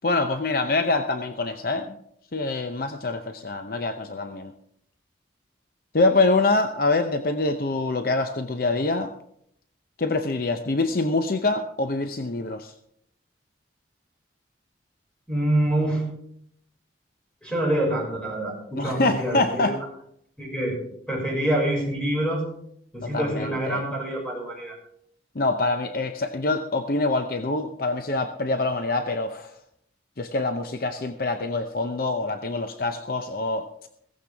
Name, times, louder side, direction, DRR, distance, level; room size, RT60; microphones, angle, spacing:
voice 1, 0.0-2.0 2.3-4.5 5.9-9.1 10.0-12.7 18.8-19.8 23.0-23.8 25.3-29.5 30.2-33.7, left 2 dB, 50° left, 7 dB, 0.7 m, -25 dB
voice 2, 15.3-16.1 17.4-19.7 20.4-20.8 21.1-22.5 22.9-24.8, right 1 dB, 5° left, -2 dB, 5.7 m, -26 dB
16.0 x 14.5 x 3.5 m, 0.70 s
head